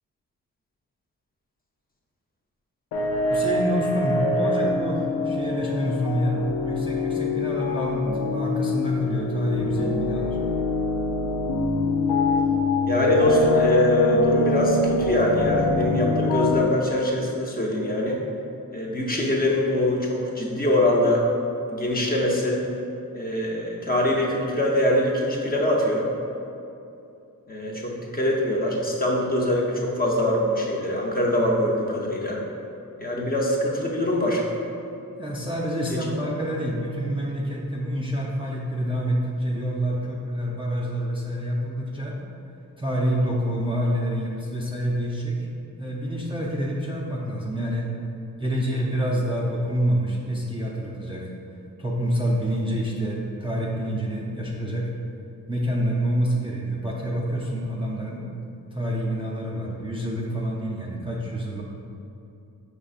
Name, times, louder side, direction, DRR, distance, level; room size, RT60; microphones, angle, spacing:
sound 1, 2.9-16.6, left 3 dB, 80° left, 0.5 m, -24 dB
voice 1, 3.3-10.4 35.2-42.2 42.8-45.4 45.8-47.9 48.4-51.2 51.8-54.9 55.5-58.2 58.7-61.6, equal, 15° right, -5 dB, 0.4 m, -27 dB
voice 2, 12.9-18.2 18.7-21.2 21.7-22.6 23.1-26.1 27.5-32.4 33.0-34.5 35.9-36.0, left 1 dB, 25° left, -2 dB, 0.6 m, -23 dB
5.1 x 3.3 x 2.4 m, 2.7 s
cardioid pair, 75°, 35 cm